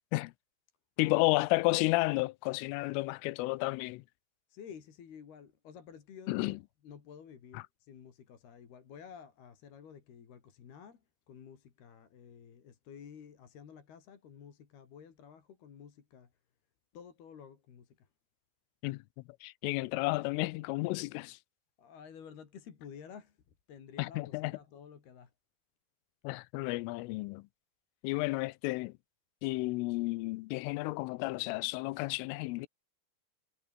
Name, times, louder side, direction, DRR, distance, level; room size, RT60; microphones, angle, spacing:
voice 1, 1.0-4.0 6.3-6.6 7.5-7.6 18.8-19.0 19.4-21.4 24.0-24.6 26.2-27.4 28.0-28.9 29.4-32.7, left 22 dB, 85° left, 3.3 m, -32 dB
voice 2, 4.5-6.6 6.8-11.0 11.3-16.3 16.9-18.1 21.8-23.4 23.7-25.3, left 7 dB, 55° left, 4.9 m, -52 dB
omnidirectional pair, 5.7 m